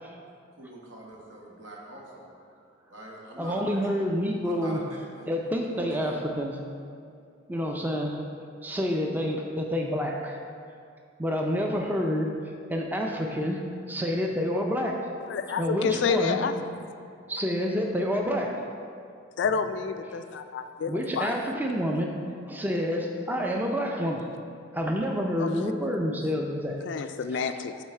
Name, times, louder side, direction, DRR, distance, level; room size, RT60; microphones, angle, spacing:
voice 1, 0.6-2.6 2.9-3.8 4.4-5.3 5.7-6.2, right 1 dB, 75° right, -2 dB, 1.3 m, -44 dB
voice 2, 3.4-4.8 5.3-6.6 7.5-8.2 8.6-10.4 11.2-12.3 12.7-13.6 13.9-15.0 15.6-16.4 17.3-18.7 20.9-22.1 22.5-24.3 24.7-26.8 27.3-27.8, equal, 10° right, 1 dB, 0.4 m, -28 dB
voice 3, 15.2-16.5 19.4-21.3 25.4-25.7 26.9-27.7, left 5 dB, 65° left, 9 dB, 0.3 m, -29 dB
8.1 x 3.9 x 4.3 m, 2.3 s
head